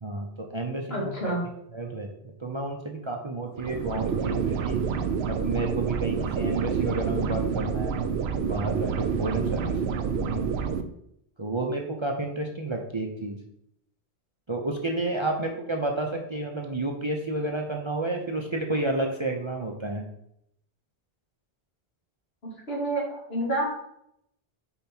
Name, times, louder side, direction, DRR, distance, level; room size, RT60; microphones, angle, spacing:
voice 1, 0.0-1.3 1.7-4.8 5.3-8.1 8.3-9.8 10.0-10.5 11.4-13.4 14.5-20.0, right 2 dB, 35° right, 1 dB, 0.6 m, -31 dB
voice 2, 0.9-1.4 22.4-23.6, right 1 dB, 70° left, -3 dB, 2.2 m, -29 dB
sound 1, 3.6-10.8, right 6 dB, 80° right, 0.8 m, -28 dB
5.4 x 4.7 x 4.4 m, 0.75 s
omnidirectional pair, 1.1 m